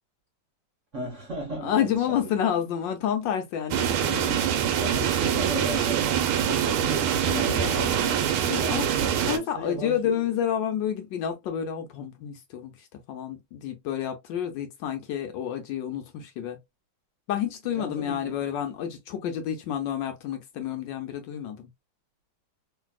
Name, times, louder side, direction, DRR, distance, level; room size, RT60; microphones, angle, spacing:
voice 1, 0.9-2.3 4.8-10.2 17.7-18.4, right 2 dB, 45° right, 1.1 m, -36 dB
voice 2, 1.6-4.4 7.3-7.9 8.5-8.9 9.3-16.6 17.3-21.7, left 9 dB, 70° left, 1.1 m, -29 dB
sound 1, 3.7-9.4, right 9 dB, 85° right, 1.5 m, -24 dB
3.3 x 2.6 x 2.2 m
omnidirectional pair, 2.3 m